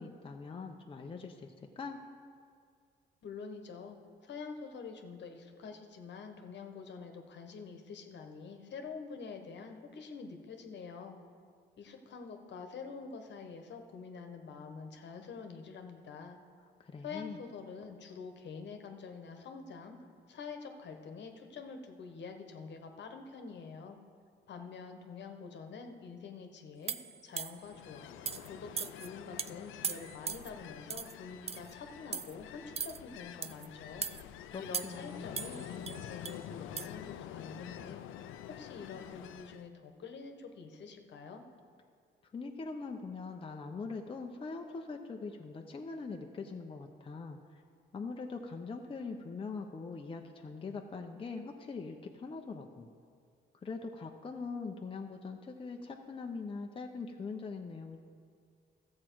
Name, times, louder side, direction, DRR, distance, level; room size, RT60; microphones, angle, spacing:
voice 1, 0.0-2.0 16.8-17.4 34.4-35.5 42.2-47.6 47.9-52.9 53.6-58.0, left 4 dB, 25° left, 3 dB, 0.7 m, -42 dB
voice 2, 3.2-4.0 4.2-11.2 11.8-16.4 17.0-20.0 20.3-24.0 24.5-27.0 27.2-28.1 28.4-34.1 34.6-38.0 38.6-41.4, left 5 dB, 65° left, 5 dB, 1.2 m, -46 dB
sound 1, 26.9-27.7 28.3-28.5 28.8-29.1 29.4-29.5 29.8-30.5 30.9-31.1 31.5-31.7 32.1-32.3 32.8-33.0 33.4-33.7 34.0-34.2 34.7-35.1 35.4-36.4 36.8-36.9, right 6 dB, 30° right, 0.4 m, -38 dB
Ocean, 27.5-39.7, left 11 dB, 85° left, 0.5 m, -48 dB
13.5 x 7.5 x 4.6 m, 2.2 s
cardioid pair, 90°, 20 cm